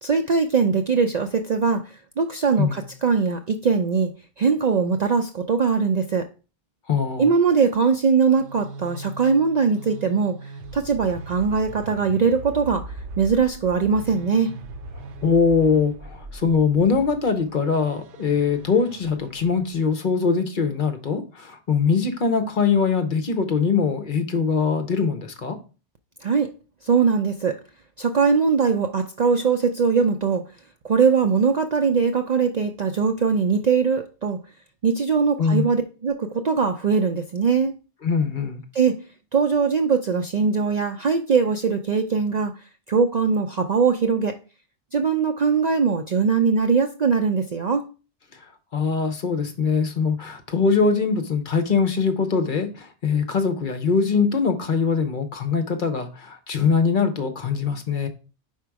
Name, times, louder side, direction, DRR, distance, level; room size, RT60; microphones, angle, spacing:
voice 1, 0.0-4.1 4.4-6.3 7.2-10.4 10.7-14.5 26.2-26.5 26.8-27.6 28.0-30.4 30.8-34.4 34.8-37.7 38.7-39.0 39.3-44.4 44.9-47.8, right 5 dB, 55° right, 0.5 m, -21 dB
voice 2, 6.9-7.3 15.0-25.6 35.4-35.6 38.0-38.6 48.7-58.1, left 5 dB, 50° left, 0.9 m, -22 dB
sound 1, 8.1-19.9, right 2 dB, 85° right, 1.0 m, -39 dB
5.0 x 4.5 x 4.6 m
omnidirectional pair, 1.2 m